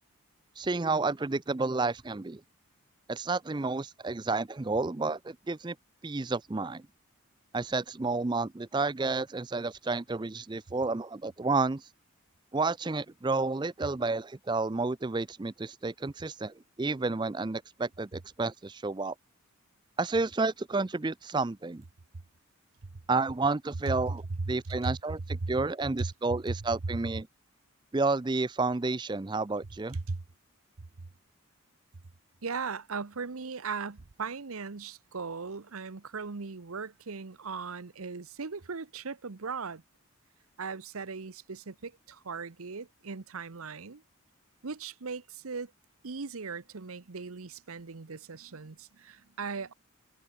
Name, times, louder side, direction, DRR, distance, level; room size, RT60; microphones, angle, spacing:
voice 1, 0.6-2.4 3.1-5.8 6.0-6.9 7.5-11.9 12.5-19.1 20.0-21.8 23.1-24.2 24.5-27.3 27.9-30.0, right 3 dB, 20° right, 0.4 m, -30 dB
voice 2, 23.9-24.9 25.3-25.5 26.0-26.1 26.5-26.6 29.9-30.2 32.4-39.8 40.6-44.0 44.6-45.7 46.0-49.7, right 4 dB, 85° right, 0.9 m, -38 dB
head